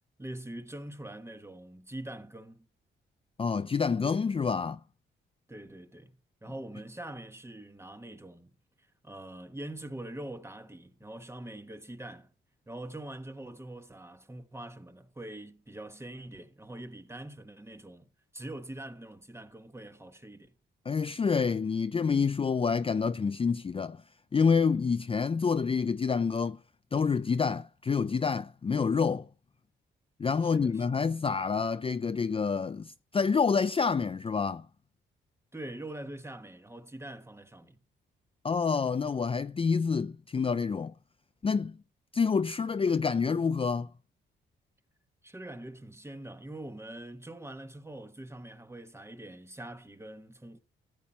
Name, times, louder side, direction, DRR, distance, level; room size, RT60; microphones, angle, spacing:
voice 1, 0.2-2.7 5.5-8.5 8.8-12.3 12.7-20.5 30.4-31.0 35.5-37.8 45.2-50.6, right 1 dB, 10° right, 1.2 m, -44 dB
voice 2, 3.4-4.8 20.9-24.0 24.3-26.6 26.9-29.3 30.2-34.7 38.4-40.9 41.4-41.8 42.1-43.9, left 5 dB, 25° left, 0.4 m, -28 dB
14.0 x 7.5 x 4.2 m
cardioid pair, 65°, 21 cm